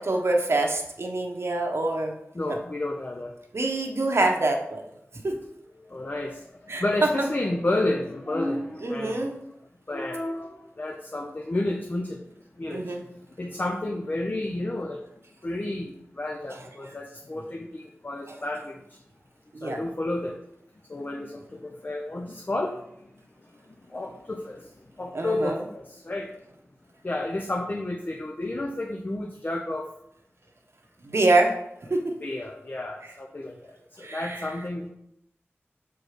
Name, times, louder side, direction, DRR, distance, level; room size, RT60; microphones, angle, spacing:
voice 1, 0.0-2.1 2.5-2.6 3.5-4.8 5.2-5.4 6.7-6.8 8.8-9.4 12.7-13.0 19.5-19.8 25.1-25.6 31.0-31.5 31.9-32.0 34.0-34.4, right 2 dB, 65° right, 2 dB, 1.1 m, -25 dB
voice 2, 2.3-3.3 5.8-9.3 9.9-12.2 12.6-15.0 15.4-19.0 19.6-20.4 20.9-23.1 23.4-26.3 27.0-29.9 32.2-34.9, left 2 dB, 40° left, 2 dB, 0.7 m, -31 dB
6.2 x 4.6 x 4.9 m, 0.78 s
wide cardioid pair, 65°, 5 cm